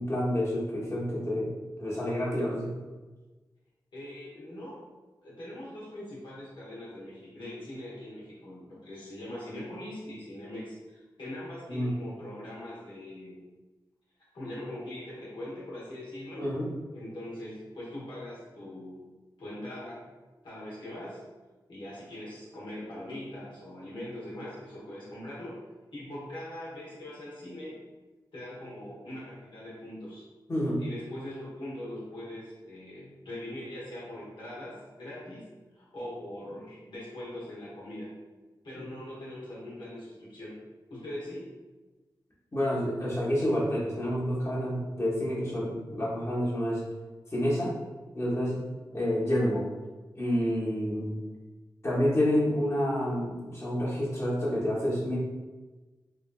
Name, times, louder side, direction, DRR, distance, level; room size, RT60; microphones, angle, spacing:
voice 1, 0.0-1.5 1.8-2.7 11.7-11.9 16.4-16.7 30.5-30.8 42.5-46.8 47.3-47.7 48.1-48.6 48.9-49.6 50.2-51.2 51.8-55.2, equal, 35° left, -7 dB, 1.1 m, -28 dB
voice 2, 3.9-4.8 5.2-13.4 14.3-16.5 16.9-19.0 19.4-20.1 20.4-21.2 21.7-25.6 25.9-27.8 28.3-30.2 30.8-35.4 35.7-38.1 38.6-40.6 40.9-41.5, left 1 dB, 80° left, -8 dB, 1.2 m, -41 dB
3.4 x 2.5 x 2.3 m, 1.2 s
cardioid pair, 50°, 8 cm